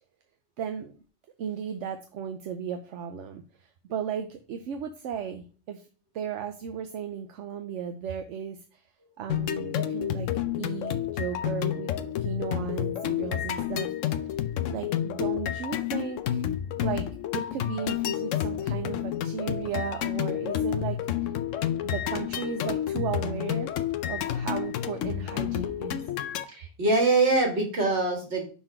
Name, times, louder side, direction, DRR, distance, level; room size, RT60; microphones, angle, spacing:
voice 1, 0.6-0.9 1.4-5.8 6.1-8.8 9.2-10.3 10.6-11.9 12.2-13.9 14.7-16.4 16.8-17.1 17.3-21.0 21.5-23.7 24.1-26.0, right 8 dB, 75° right, 7 dB, 1.0 m, -35 dB
sound 1, 9.3-26.4, left 11 dB, 85° left, 1.0 m, -30 dB
voice 2, 26.5-28.5, right 3 dB, 60° right, 1 dB, 2.1 m, -24 dB
5.7 x 4.3 x 4.4 m, 0.38 s
omnidirectional pair, 1.3 m